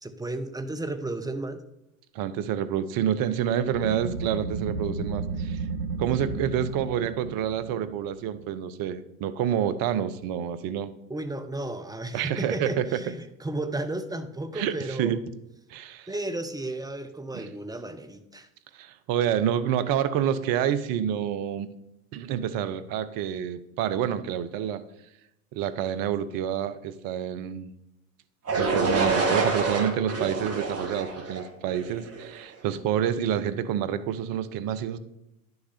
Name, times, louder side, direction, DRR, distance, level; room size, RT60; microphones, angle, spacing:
voice 1, 0.0-1.6 11.1-15.2 16.1-18.5, right 2 dB, 10° right, 9 dB, 1.0 m, -33 dB
voice 2, 2.1-5.6 6.0-10.9 12.1-12.8 14.5-15.2 15.7-16.1 17.3-17.5 18.7-21.7 22.1-24.8 25.5-27.7 28.6-35.0, right 9 dB, 55° right, 14 dB, 0.9 m, -28 dB
sound 1, 3.6-8.9, right 4 dB, 85° right, 1.2 m, -33 dB
sound 2, 28.5-32.4, right 3 dB, 35° right, 2.4 m, -27 dB
11.0 x 6.7 x 4.2 m, 0.88 s
hypercardioid pair, 80°, 42 cm